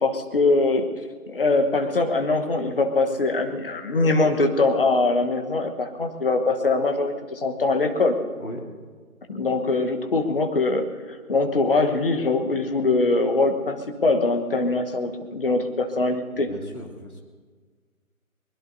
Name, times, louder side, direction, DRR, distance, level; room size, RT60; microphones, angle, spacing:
voice 1, 0.0-0.8 1.3-8.2 9.3-10.9 11.3-16.5, left 3 dB, 40° left, 6 dB, 1.3 m, -22 dB
voice 2, 16.3-17.2, equal, 80° left, -1 dB, 3.2 m, -37 dB
22.5 x 21.0 x 2.7 m, 1.5 s
figure-of-eight pair, 150°, 43 cm